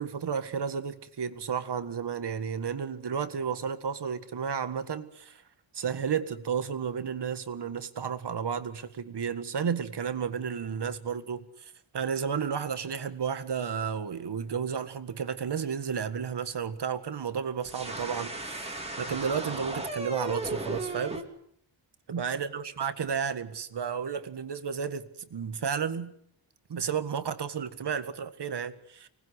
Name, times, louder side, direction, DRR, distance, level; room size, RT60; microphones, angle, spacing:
voice 1, 0.0-5.4 5.7-21.2 22.1-26.1 26.7-29.1, right 7 dB, 55° right, 1.8 m, -32 dB
sound 1, 17.6-21.2, right 1 dB, 10° right, 2.8 m, -36 dB
25.5 x 20.0 x 8.1 m
wide cardioid pair, 175°, 48 cm